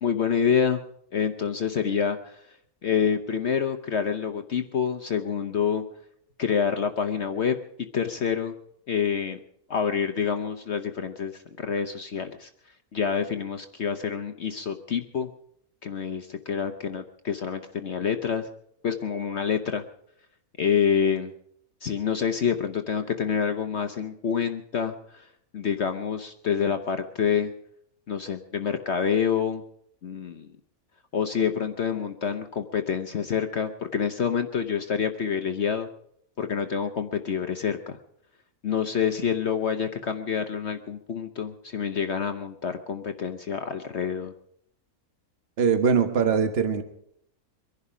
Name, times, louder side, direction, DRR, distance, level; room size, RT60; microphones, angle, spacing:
voice 1, 0.0-0.8 1.1-2.4 2.8-5.8 6.4-7.6 7.9-8.5 8.9-9.4 9.7-12.5 12.9-15.3 15.8-18.5 18.8-19.8 20.6-21.3 21.8-25.3 25.5-27.5 28.1-29.6 30.0-30.5 31.1-35.9 36.4-38.0 38.6-44.3, left 7 dB, 55° left, 7 dB, 1.1 m, -27 dB
voice 2, 45.6-46.8, right 6 dB, 45° right, 8 dB, 1.4 m, -22 dB
24.0 x 11.0 x 5.0 m, 0.71 s
omnidirectional pair, 1.6 m